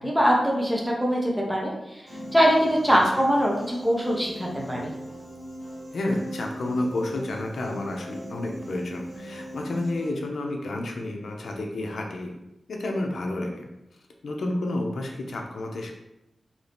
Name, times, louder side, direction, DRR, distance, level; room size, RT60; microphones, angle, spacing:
voice 1, 0.0-4.9, equal, ahead, -3 dB, 0.7 m, -23 dB
Piano, 2.1-10.1, equal, 25° right, 1.4 m, -39 dB
voice 2, 5.9-12.3 12.7-13.7 14.2-15.9, left 2 dB, 80° left, 1 dB, 0.5 m, -30 dB
2.7 x 2.6 x 3.4 m, 0.88 s
wide cardioid pair, 130°, 0 cm